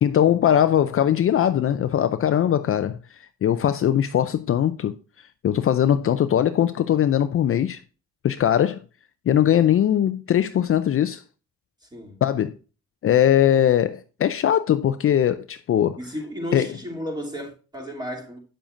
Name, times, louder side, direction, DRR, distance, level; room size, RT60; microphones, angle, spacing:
voice 1, 0.0-3.0 3.4-4.9 5.4-7.8 8.2-8.8 9.3-11.2 12.2-12.5 13.0-16.0 16.5-16.7, left 10 dB, 45° left, 0.5 m, -20 dB
voice 2, 16.0-18.4, equal, 15° right, 2.8 m, -33 dB
8.8 x 7.0 x 2.5 m
cardioid pair, 90°, 30 cm